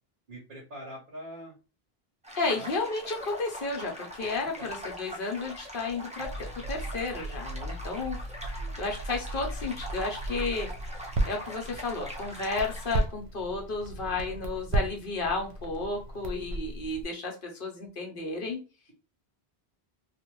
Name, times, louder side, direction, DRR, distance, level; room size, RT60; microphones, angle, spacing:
voice 1, 0.3-1.5 2.5-2.7 4.6-4.7 8.6-8.8 14.0-14.4, equal, 60° right, -4 dB, 1.0 m, -44 dB
sound 1, 2.2-13.0, equal, 10° right, 0.3 m, -42 dB
voice 2, 2.4-8.2 8.5-10.7 11.3-18.6, left 3 dB, 60° left, 1 dB, 0.9 m, -33 dB
Crackle, 6.2-17.0, right 1 dB, 85° right, 0.9 m, -35 dB
2.5 x 2.4 x 3.0 m, 0.32 s
omnidirectional pair, 1.0 m